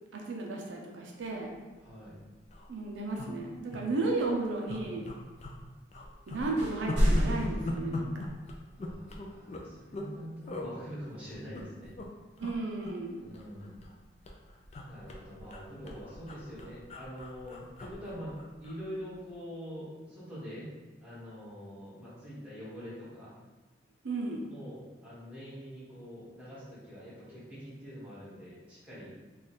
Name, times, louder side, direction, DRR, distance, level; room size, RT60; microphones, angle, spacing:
voice 1, 0.1-1.5 2.7-5.0 6.3-8.1 12.4-13.3 24.0-24.4, right 3 dB, 80° right, 0 dB, 0.5 m, -34 dB
sound 1, 1.7-1.9 2.1-2.2 2.4-2.7 3.1-3.8 4.2-4.3 4.7-5.6 5.9-10.1 10.5-10.7 11.3-12.1 12.4-12.6 12.8-14.0 14.2-18.8 19.1-19.3, left 1 dB, 35° left, 0.4 m, -40 dB
voice 2, 1.8-2.2 8.8-11.9 13.2-13.8 14.8-20.7 21.0-23.3 24.5-29.1, equal, 5° right, -11 dB, 1.4 m, -44 dB
sound 2, 6.6-7.7, equal, 65° right, 1.1 m, -27 dB
3.2 x 2.4 x 4.2 m, 1.3 s
head